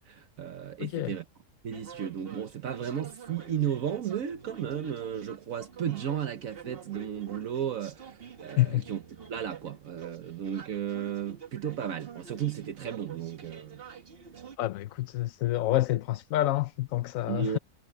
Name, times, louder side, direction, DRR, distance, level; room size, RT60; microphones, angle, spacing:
voice 1, 0.0-1.2 1.6-9.0 9.3-13.8 17.3-17.6, right 9 dB, 70° right, 1.4 m, -34 dB
voice 2, 0.8-1.1 8.6-8.8 14.6-17.6, left 15 dB, 75° left, 1.0 m, -28 dB
sound 1, 1.7-14.6, right 6 dB, 45° right, 1.5 m, -48 dB
omnidirectional pair, 1.5 m